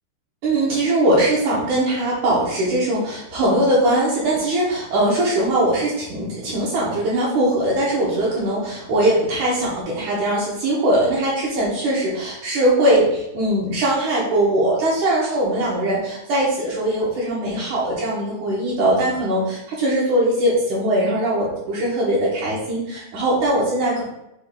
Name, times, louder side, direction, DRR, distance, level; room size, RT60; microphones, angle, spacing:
voice 1, 0.4-24.0, right 1 dB, 70° right, -6 dB, 2.1 m, -20 dB
6.3 x 2.3 x 3.6 m, 0.86 s
omnidirectional pair, 4.1 m